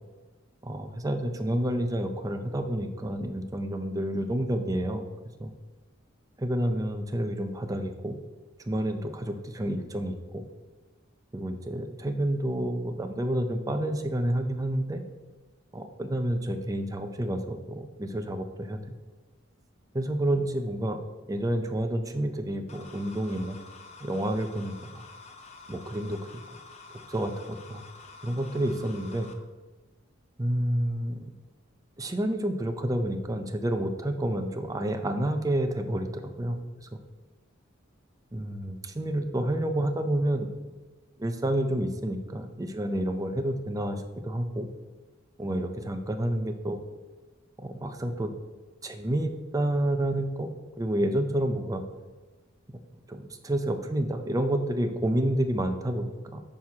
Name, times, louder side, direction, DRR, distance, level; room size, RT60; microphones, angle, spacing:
voice 1, 0.6-5.1 5.4-5.5 6.4-8.2 8.7-10.4 11.3-15.0 15.7-18.8 19.9-21.0 21.3-23.6 24.0-25.0 25.7-26.2 26.9-27.8 28.2-29.3 30.4-31.2 32.0-37.0 38.3-40.5 41.2-44.7 45.4-46.8 47.6-48.3 48.8-50.5 50.8-51.8 53.1-56.4, right 1 dB, 15° right, 6 dB, 0.5 m, -29 dB
sound 1, 22.7-29.3, left 4 dB, 35° left, 0.6 m, -49 dB
8.8 x 6.0 x 2.8 m, 1.3 s
head